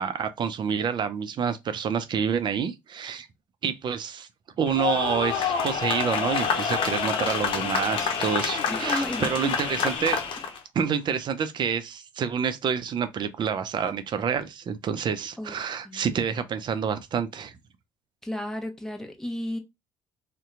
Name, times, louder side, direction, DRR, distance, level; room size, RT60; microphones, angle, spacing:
voice 1, 0.0-3.3 3.6-4.3 4.6-10.2 10.7-17.6, right 7 dB, 50° right, 0.5 m, -28 dB
sound 1, 4.7-10.6, left 6 dB, 55° left, 0.7 m, -27 dB
voice 2, 8.7-9.5 15.4-15.6 15.8-16.4 18.2-19.6, left 1 dB, 5° left, 0.9 m, -33 dB
2.7 x 2.2 x 3.7 m
hypercardioid pair, 60°, 10 cm